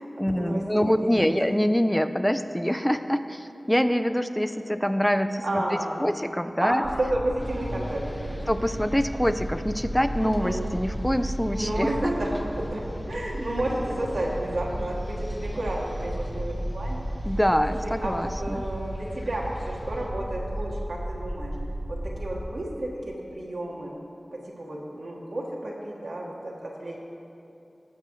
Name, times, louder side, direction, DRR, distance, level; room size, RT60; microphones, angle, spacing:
voice 1, 0.2-6.8 8.5-12.1 17.2-18.7, equal, 5° left, 9 dB, 0.4 m, -25 dB
voice 2, 0.9-1.3 5.4-6.1 6.6-8.4 10.2-10.8 11.5-12.8 13.1-17.0 17.8-21.5 22.2-23.9 24.6-27.0, right 1 dB, 90° right, -3 dB, 1.6 m, -31 dB
sound 1, 6.8-22.5, right 1 dB, 60° right, 1.1 m, -34 dB
sound 2, 7.4-20.1, left 1 dB, 40° left, 0.9 m, -42 dB
17.0 x 7.0 x 3.1 m, 2.9 s
wide cardioid pair, 60°, 0 cm